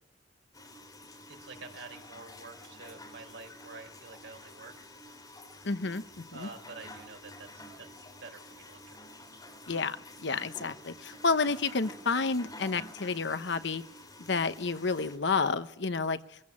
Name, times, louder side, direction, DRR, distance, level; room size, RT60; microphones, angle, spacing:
sound 1, 0.5-15.2, left 1 dB, 20° left, 3.7 m, -49 dB
voice 1, 1.3-4.9 6.3-9.0, right 3 dB, 85° right, 3 dB, 5.0 m, -48 dB
voice 2, 5.6-6.5 9.7-13.8 14.3-16.2, left 4 dB, 65° left, 12 dB, 1.0 m, -30 dB
22.5 x 15.0 x 8.6 m, 0.77 s
head